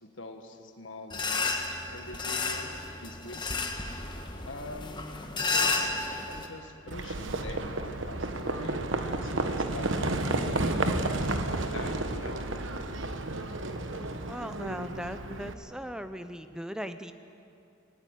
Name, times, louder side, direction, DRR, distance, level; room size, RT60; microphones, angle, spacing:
voice 1, 0.0-3.4 4.4-6.0 6.3-8.8 9.1-12.4, left 2 dB, 65° left, 5 dB, 1.7 m, -44 dB
sound 1, 1.1-6.5, left 3 dB, 20° left, 1.3 m, -32 dB
Livestock farm animals working animals, 6.9-15.5, right 2 dB, 65° right, 1.2 m, -31 dB
voice 2, 14.3-17.1, equal, 5° right, 10 dB, 0.7 m, -38 dB
18.5 x 18.0 x 9.1 m, 2.5 s
head